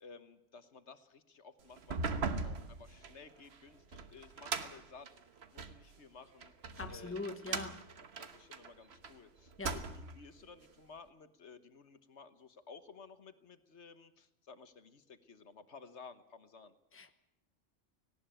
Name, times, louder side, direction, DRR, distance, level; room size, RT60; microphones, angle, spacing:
voice 1, 0.0-5.1 5.5-6.5 6.9-7.2 7.4-7.6 8.2-16.7, left 5 dB, 70° left, 1.5 m, -55 dB
sound 1, 1.8-5.8 6.4-9.1 9.5-10.2, right 4 dB, 60° right, 1.4 m, -40 dB
voice 2, 6.8-7.9 9.6-9.8 16.9-17.1, left 3 dB, 10° left, 1.2 m, -42 dB
18.5 x 17.0 x 8.9 m
omnidirectional pair, 1.2 m